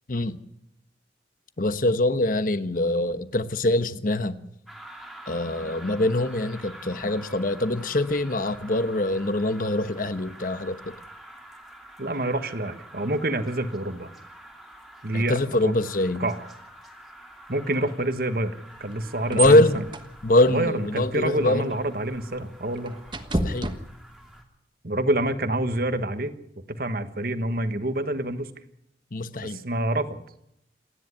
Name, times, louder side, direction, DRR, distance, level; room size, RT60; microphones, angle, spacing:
voice 1, 1.6-4.4 5.3-10.9 15.1-16.3 19.3-19.8 20.2-21.7 23.4-23.7 29.1-29.6, left 1 dB, 50° left, 12 dB, 1.1 m, -23 dB
sound 1, 4.7-24.4, right 1 dB, ahead, 2.8 m, -47 dB
voice 2, 12.0-14.1 15.0-15.4 15.6-15.7 16.2-16.4 17.5-18.5 18.8-19.6 20.5-23.0 24.8-26.3 26.7-28.5 29.4-30.2, right 1 dB, 55° right, 10 dB, 1.4 m, -27 dB
sound 2, 18.7-24.4, right 2 dB, 25° right, 1.3 m, -34 dB
27.5 x 10.5 x 9.7 m, 0.77 s
head